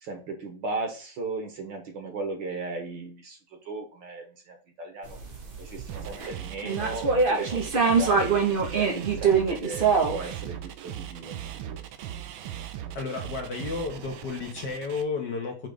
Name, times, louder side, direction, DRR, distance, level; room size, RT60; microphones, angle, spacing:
voice 1, 0.0-3.4 3.7-5.2 5.6-8.3 8.7-11.8, right 3 dB, 60° right, 3 dB, 1.9 m, -36 dB
sound 1, 5.1-6.3 6.6-10.3, right 5 dB, 40° right, 0.8 m, -24 dB
sound 2, 5.9-15.0, right 11 dB, 75° right, 1.4 m, -38 dB
voice 2, 12.9-15.7, left 4 dB, 55° left, 2 dB, 1.5 m, -32 dB
6.4 x 3.2 x 4.9 m, 0.36 s
omnidirectional pair, 2.4 m